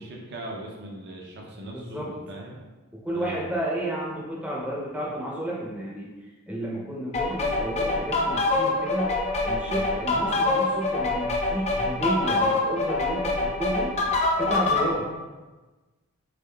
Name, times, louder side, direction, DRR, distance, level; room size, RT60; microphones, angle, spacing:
voice 1, 0.0-2.6 3.1-3.4 9.7-10.0, right 1 dB, 50° right, -1 dB, 0.6 m, -39 dB
voice 2, 1.7-2.1 3.0-6.1 6.5-9.1 9.4-13.9 14.4-15.1, right 1 dB, 5° right, -5 dB, 0.7 m, -31 dB
sound 1, 7.1-14.9, left 2 dB, 30° left, 0.4 m, -25 dB
3.6 x 3.4 x 2.3 m, 1.2 s
head